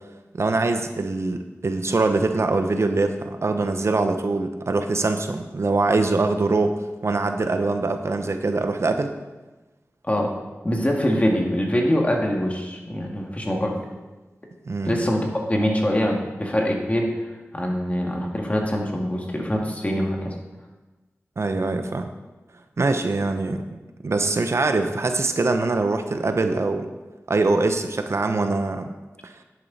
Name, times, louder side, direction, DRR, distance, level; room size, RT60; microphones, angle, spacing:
voice 1, 0.4-9.1 14.7-15.0 21.4-22.1 22.8-26.9 27.3-28.9 29.2-29.3, right 3 dB, 65° right, 7 dB, 0.8 m, -23 dB
voice 2, 10.6-13.9 14.9-17.1 17.5-20.3, equal, 25° left, 0 dB, 2.2 m, -24 dB
10.5 x 9.0 x 4.2 m, 1.2 s
cardioid pair, 45°, 5 cm